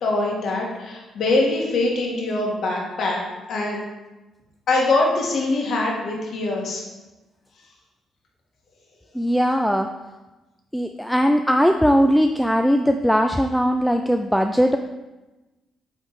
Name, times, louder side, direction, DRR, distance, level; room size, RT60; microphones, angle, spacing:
voice 1, 0.0-3.2 3.5-3.8 4.7-6.8, left 2 dB, 65° left, -1 dB, 1.6 m, -23 dB
voice 2, 9.1-9.9 10.7-14.8, equal, ahead, 6 dB, 0.3 m, -19 dB
8.3 x 3.5 x 4.0 m, 1.1 s
cardioid pair, 90°, 0 cm